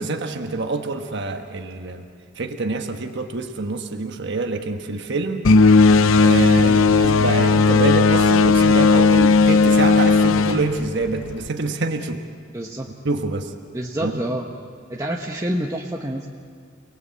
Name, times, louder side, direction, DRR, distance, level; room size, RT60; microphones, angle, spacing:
voice 1, 0.0-2.0 2.3-5.5 6.1-12.2 13.0-13.5 14.0-14.2, right 3 dB, 60° right, 4 dB, 1.3 m, -26 dB
sound 1, 5.4-11.5, left 4 dB, 75° left, 0.6 m, -15 dB
voice 2, 12.5-12.9 13.7-14.5 14.9-16.3, right 1 dB, 15° right, 0 dB, 1.1 m, -27 dB
29.5 x 19.0 x 8.3 m, 2.2 s
head